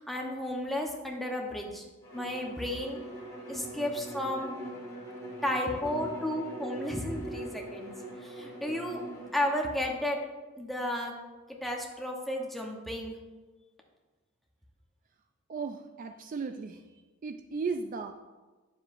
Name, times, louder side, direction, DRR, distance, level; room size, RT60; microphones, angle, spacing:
voice 1, 0.0-1.8 2.1-3.0 3.5-4.5 5.4-7.9 8.2-9.0 9.3-10.2 10.6-11.1 11.6-13.2, left 1 dB, ahead, 0 dB, 0.9 m, -33 dB
Bowed string instrument, 2.0-9.4, right 1 dB, 15° left, 2.5 m, -41 dB
voice 2, 15.5-16.8 17.2-18.1, right 4 dB, 40° right, 6 dB, 0.3 m, -35 dB
9.5 x 7.4 x 2.5 m, 1.2 s
head